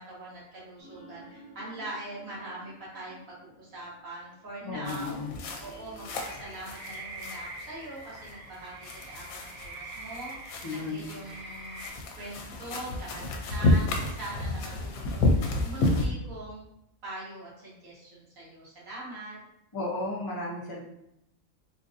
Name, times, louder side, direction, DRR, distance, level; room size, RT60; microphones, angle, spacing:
voice 1, 0.0-5.2 5.6-11.8 12.2-16.7 17.0-19.4, right 1 dB, 75° right, -8 dB, 1.9 m, -42 dB
sound 1, 0.8-6.8, equal, 15° left, 0.7 m, -53 dB
voice 2, 4.6-5.4 10.6-11.0 19.7-20.8, left 2 dB, 35° left, -3 dB, 0.3 m, -34 dB
sound 2, 4.9-16.1, left 2 dB, 80° left, 1.0 m, -31 dB
sound 3, 6.1-11.9, right 2 dB, 55° right, 1.3 m, -44 dB
3.8 x 2.6 x 2.5 m, 0.81 s
omnidirectional pair, 1.4 m